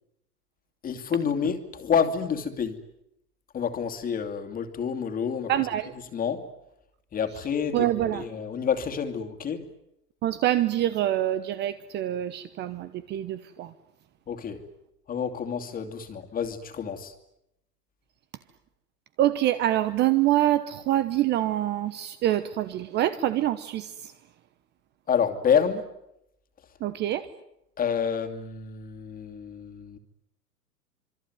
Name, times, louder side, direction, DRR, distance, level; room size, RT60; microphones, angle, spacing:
voice 1, 0.8-2.8 3.5-5.5 6.1-6.5 7.1-9.6 14.3-14.6 15.1-17.1 25.1-25.8 27.8-30.0, left 7 dB, 15° left, 2.6 m, -28 dB
voice 2, 5.5-5.9 7.7-8.2 10.2-13.7 19.2-24.1 26.8-27.3, right 13 dB, 20° right, 1.0 m, -25 dB
26.5 x 23.5 x 9.5 m
hypercardioid pair, 135°, 48 cm